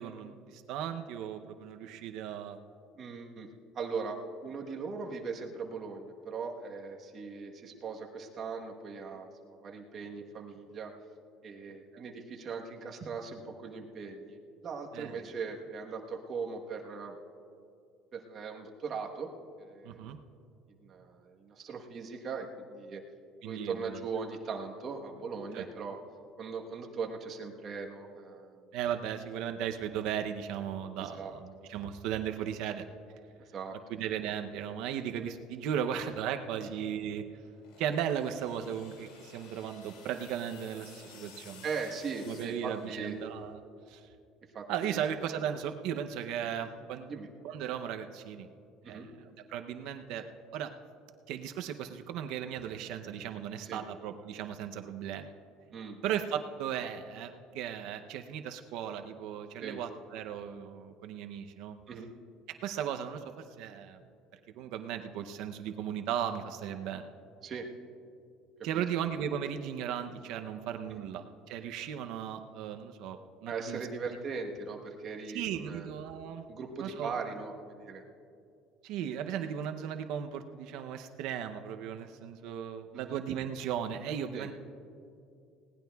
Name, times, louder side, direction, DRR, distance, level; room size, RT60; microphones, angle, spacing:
voice 1, 0.0-2.6 14.9-15.2 19.8-20.2 23.4-24.0 25.5-25.6 28.7-32.9 33.9-37.2 37.8-41.6 42.3-43.6 43.9-44.1 44.7-47.1 47.4-48.5 48.9-49.1 49.5-50.2 50.5-50.7 51.3-55.3 56.0-61.8 62.6-63.2 63.6-64.0 64.5-67.1 68.6-73.8 75.3-76.4 76.8-77.1 78.8-84.5, right 9 dB, 60° right, 7 dB, 0.6 m, -36 dB
voice 2, 2.9-3.5 3.7-10.9 11.4-17.2 18.1-19.3 19.6-20.1 20.8-23.0 23.4-26.0 26.4-28.7 31.0-31.3 33.4-33.7 36.6-36.7 41.6-43.2 44.5-45.0 47.1-47.3 48.8-49.1 53.6-53.8 55.7-56.0 59.6-59.8 61.9-62.1 67.4-67.6 68.7-68.8 70.9-71.1 73.5-75.9 76.5-78.0 82.9-83.2 84.3-84.5, right 5 dB, 30° right, 1 dB, 1.1 m, -39 dB
sound 1, 37.5-43.4, left 5 dB, 85° left, 2.3 m, -54 dB
20.0 x 18.0 x 2.3 m, 2.5 s
cardioid pair, 165°, 0 cm